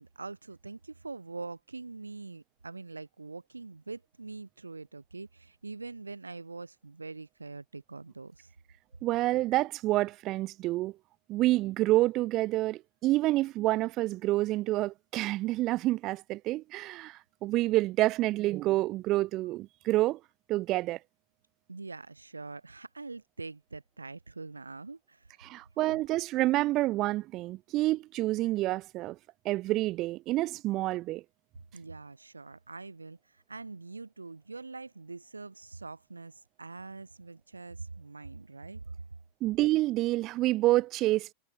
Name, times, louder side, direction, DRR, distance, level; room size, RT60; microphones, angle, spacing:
voice 1, 0.0-8.5 21.7-25.4 31.7-38.8, right 3 dB, 80° right, 2.4 m, -44 dB
voice 2, 9.0-10.9 11.3-20.2 20.5-21.0 25.4-29.2 29.5-31.2 39.4-41.3, right 17 dB, 35° right, 1.8 m, -28 dB
figure-of-eight pair, 90°, 0 cm